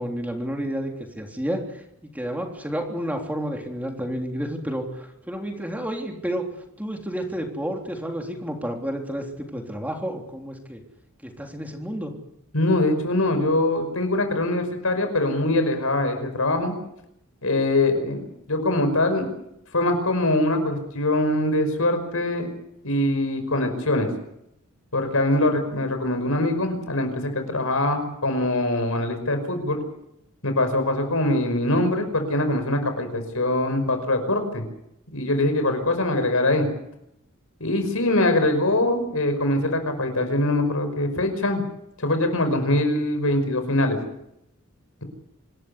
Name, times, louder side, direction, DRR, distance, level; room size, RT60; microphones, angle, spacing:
voice 1, 0.0-1.8 2.1-6.4 6.8-10.8 11.2-12.1 25.4-25.5 36.1-36.2, equal, 5° right, 2 dB, 3.5 m, -30 dB
voice 2, 12.5-16.8 17.4-18.2 18.5-19.3 19.7-22.5 22.8-24.1 24.9-29.8 30.4-34.6 35.1-36.7 37.6-41.6 42.0-44.0, left 1 dB, 75° left, 7 dB, 5.5 m, -23 dB
26.5 x 13.5 x 9.7 m, 0.79 s
head